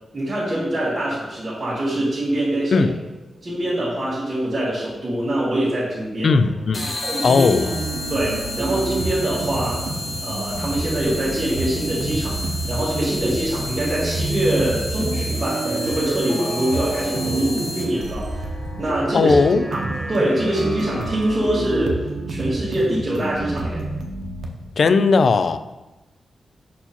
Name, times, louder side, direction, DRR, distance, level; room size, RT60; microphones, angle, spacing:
voice 1, 0.1-2.9 3.4-6.3 7.0-7.5 8.1-9.8 10.2-18.5 18.8-19.3 19.7-19.8 20.1-22.0 22.3-23.8, right 1 dB, 30° right, 1.7 m, -24 dB
sound 1, 1.9-4.5 4.7-4.8 6.4-12.9 13.8-21.8, right 1 dB, 20° left, 1.9 m, -42 dB
voice 2, 6.2-6.9 7.2-7.7 19.1-19.7 24.8-25.7, left 4 dB, 60° left, 0.3 m, -17 dB
sound 2, 6.7-18.1, left 2 dB, 40° left, 1.0 m, -32 dB
sound 3, 7.4-24.5, right 2 dB, 85° right, 0.7 m, -28 dB
5.6 x 4.6 x 4.2 m
wide cardioid pair, 110°, 0 cm